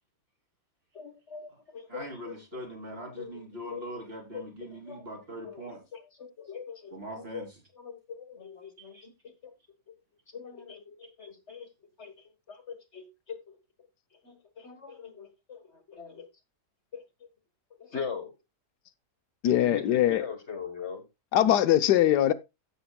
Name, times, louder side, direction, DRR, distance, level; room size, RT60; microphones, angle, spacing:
voice 1, 0.9-2.9 3.2-3.4 3.7-3.8 4.3-5.1 5.4-7.4 7.7-9.5 10.3-11.7 12.0-12.1 12.5-13.6 14.2-16.3 16.9-17.3 17.8-18.3 19.6-21.1, left 6 dB, 45° left, 1.5 m, -42 dB
voice 2, 1.9-5.8 6.9-7.5 8.8-9.1, right 1 dB, 35° right, 3.3 m, -41 dB
voice 3, 19.4-20.2 21.3-22.3, left 12 dB, 90° left, 1.4 m, -22 dB
15.5 x 7.0 x 2.3 m
omnidirectional pair, 1.7 m